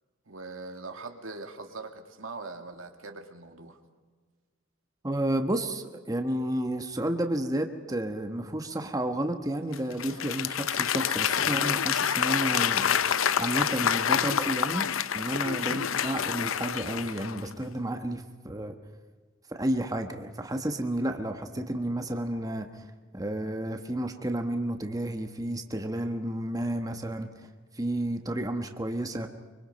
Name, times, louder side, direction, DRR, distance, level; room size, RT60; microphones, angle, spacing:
voice 1, 0.3-3.8, right 3 dB, 85° right, 5 dB, 2.3 m, -42 dB
voice 2, 5.0-13.0 13.4-18.8 19.5-22.9 23.1-27.3 27.7-29.3, right 1 dB, 20° right, 6 dB, 1.3 m, -31 dB
Applause / Crowd, 9.7-17.5, left 8 dB, 85° left, 0.7 m, -27 dB
24.5 x 24.5 x 5.3 m, 1.4 s
head